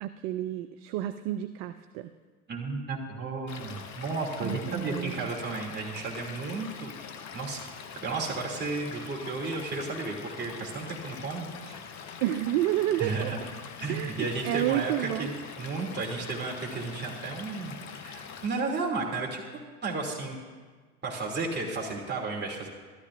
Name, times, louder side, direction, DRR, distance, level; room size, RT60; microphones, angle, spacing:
voice 1, 0.0-2.1 4.4-5.3 12.2-13.3 13.9-15.3, right 13 dB, 40° right, 11 dB, 0.4 m, -30 dB
voice 2, 2.5-6.9 7.3-7.6 8.0-11.8 13.0-13.4 13.8-15.3 15.6-19.4 19.8-20.4 21.0-22.7, right 3 dB, 25° right, -1 dB, 2.7 m, -33 dB
Stream / Liquid, 3.5-18.5, left 6 dB, 40° left, 1.1 m, -43 dB
13.5 x 13.0 x 2.5 m, 1.4 s
figure-of-eight pair, 80°, 43 cm